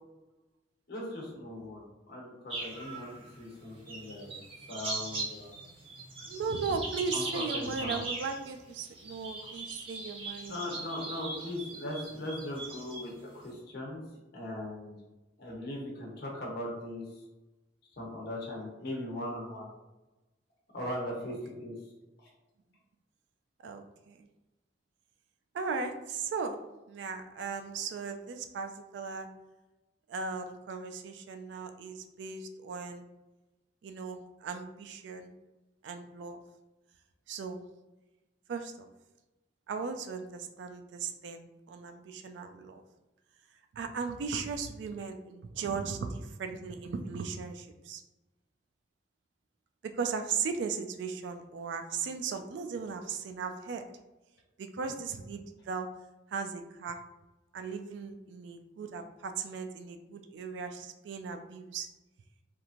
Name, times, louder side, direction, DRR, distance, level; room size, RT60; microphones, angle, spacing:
voice 1, 0.9-3.1 3.4-4.4 4.7-5.6 7.1-8.0 10.5-14.0 14.3-15.0 15.4-17.2 17.9-19.7 20.7-21.8 22.2-22.3, left 1 dB, 60° left, -3 dB, 0.9 m, -39 dB
sound 1, 2.5-13.5, right 2 dB, 30° right, 0.6 m, -40 dB
voice 2, 6.3-10.6 23.6-24.3 25.5-26.6 26.9-29.3 30.1-33.0 33.8-35.3 35.8-36.4 37.3-37.6 38.5-38.9 39.7-42.8 43.7-48.0 49.8-53.8 54.6-55.9 56.3-57.0 57.5-61.9, right 5 dB, 70° right, 6 dB, 0.3 m, -37 dB
3.0 x 2.5 x 2.4 m, 1.0 s
head